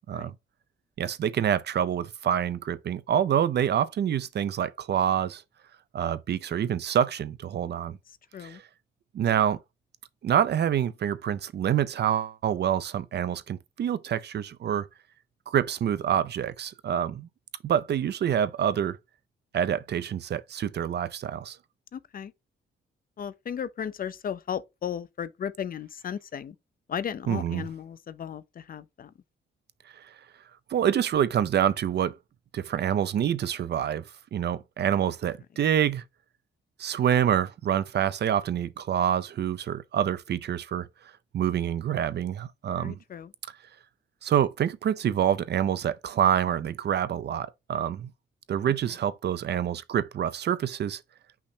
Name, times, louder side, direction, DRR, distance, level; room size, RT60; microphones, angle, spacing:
voice 1, 1.0-5.4 5.9-8.0 8.4-8.6 9.1-9.6 10.2-14.9 15.5-17.3 17.6-19.0 19.5-21.6 27.3-27.7 29.9-30.1 30.7-32.1 32.5-34.0 34.3-36.0 36.8-40.9 41.3-42.9 44.2-48.1 48.5-51.0, right 9 dB, 55° right, 0.4 m, -26 dB
voice 2, 21.9-22.3 23.2-26.5 26.9-29.1 42.8-43.3, left 8 dB, 45° left, 0.4 m, -35 dB
5.7 x 2.1 x 4.3 m
cardioid pair, 80°, 21 cm